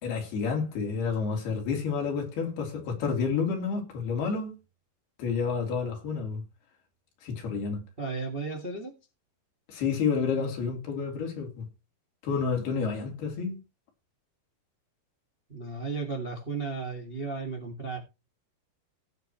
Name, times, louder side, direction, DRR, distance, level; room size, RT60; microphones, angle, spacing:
voice 1, 0.0-4.5 5.2-6.4 7.2-7.8 9.7-11.6 12.2-13.6, left 5 dB, 70° left, 4.9 m, -29 dB
voice 2, 8.0-8.9 15.5-18.0, right 4 dB, 55° right, 0.6 m, -34 dB
17.5 x 7.8 x 3.0 m
omnidirectional pair, 4.7 m